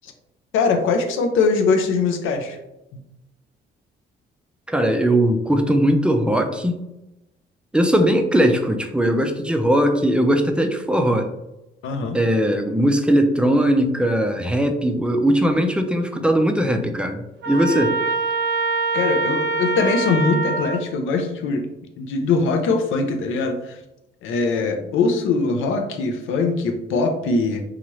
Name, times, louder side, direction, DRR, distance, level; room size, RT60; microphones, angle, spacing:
voice 1, 0.5-2.6 11.8-12.2 18.9-21.7 22.0-23.8 24.2-27.6, left 4 dB, 80° left, 5 dB, 0.5 m, -21 dB
voice 2, 4.7-6.8 7.7-11.3 12.1-17.9, right 1 dB, 5° right, 5 dB, 0.4 m, -19 dB
Trumpet, 17.4-20.8, right 3 dB, 65° right, 0.6 m, -24 dB
2.8 x 2.4 x 3.0 m, 0.91 s
cardioid pair, 90°, 20 cm